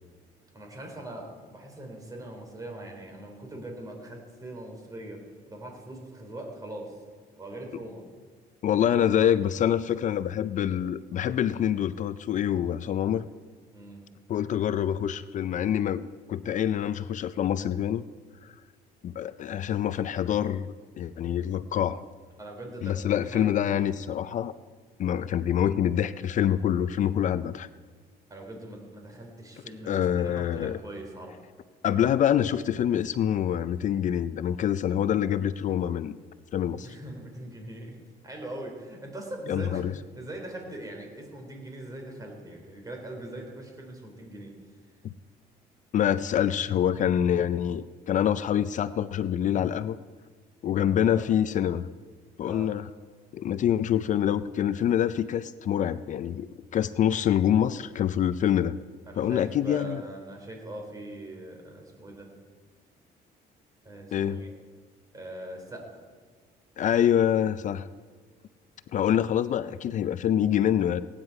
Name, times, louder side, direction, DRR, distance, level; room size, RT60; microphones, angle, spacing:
voice 1, 0.5-5.2 5.5-6.9 7.4-8.0 13.7-14.0 22.4-23.5 28.3-31.4 36.8-38.0 38.2-39.9 40.2-44.5 51.0-51.3 52.4-52.7 59.1-62.3 63.8-64.6 65.1-66.0, right 1 dB, 20° right, 1 dB, 3.7 m, -41 dB
voice 2, 8.6-13.3 14.3-18.0 19.0-22.0 22.8-24.5 25.0-27.7 29.9-30.8 31.8-36.2 36.5-36.9 39.5-39.9 45.0-45.1 45.9-50.0 50.6-51.9 52.4-52.9 53.3-58.8 59.2-60.0 64.1-64.4 66.8-67.8 68.9-71.0, left 10 dB, 50° left, 14 dB, 0.5 m, -26 dB
17.5 x 9.8 x 4.8 m, 1.5 s
cardioid pair, 110°, 17 cm